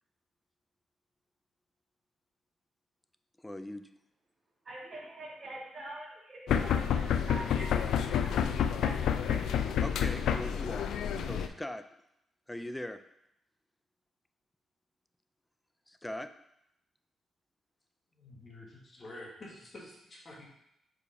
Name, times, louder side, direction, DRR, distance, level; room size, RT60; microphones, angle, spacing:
voice 1, 3.4-3.9 9.8-11.8 12.5-13.0 15.9-16.3, left 1 dB, 5° left, 9 dB, 0.4 m, -40 dB
voice 2, 4.6-8.3 8.6-9.0 9.3-9.5, right 1 dB, 40° right, -6 dB, 2.4 m, -45 dB
sound 1, 6.5-11.5, left 8 dB, 80° left, 0.4 m, -29 dB
voice 3, 18.1-20.5, left 1 dB, 30° left, -3 dB, 1.7 m, -48 dB
5.1 x 4.7 x 4.9 m, 0.80 s
cardioid pair, 140°, 0 cm